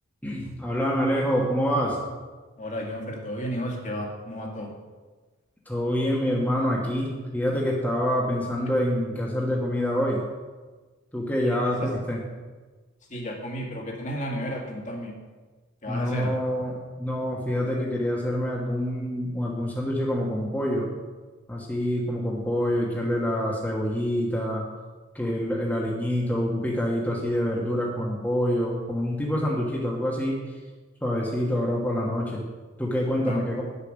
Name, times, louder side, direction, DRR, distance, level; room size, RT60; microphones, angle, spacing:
voice 1, 0.2-2.0 5.7-10.2 11.1-12.2 15.9-20.9 21.5-24.7 25.1-30.4 31.0-32.4 32.8-33.6, equal, 10° left, -4 dB, 1.4 m, -26 dB
voice 2, 2.6-4.7 11.4-11.6 13.1-15.1 15.8-16.3 33.3-33.4, equal, 40° left, 0 dB, 2.0 m, -33 dB
9.9 x 7.0 x 6.4 m, 1.3 s
head